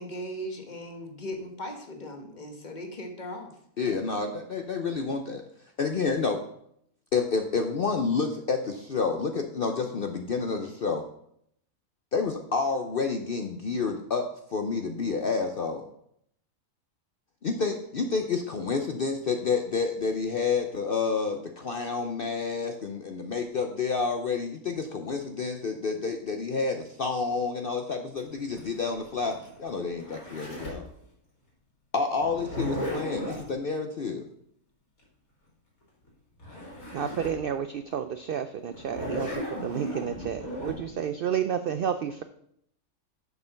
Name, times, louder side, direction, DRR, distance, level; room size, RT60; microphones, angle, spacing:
voice 1, 0.0-3.5, equal, 35° left, 3 dB, 1.3 m, -38 dB
voice 2, 3.8-5.4 5.8-6.4 7.1-11.0 12.1-15.8 17.4-30.8 31.9-34.2, left 4 dB, 50° left, 5 dB, 0.7 m, -29 dB
Zipper (clothing), 28.2-30.9 32.2-33.5 36.1-36.2 36.4-37.4 37.9-38.0 38.7-40.7, equal, 85° left, 3.4 m, -36 dB
voice 3, 36.9-42.2, right 8 dB, 75° right, 9 dB, 0.5 m, -31 dB
6.8 x 6.6 x 5.7 m, 0.71 s
omnidirectional pair, 1.5 m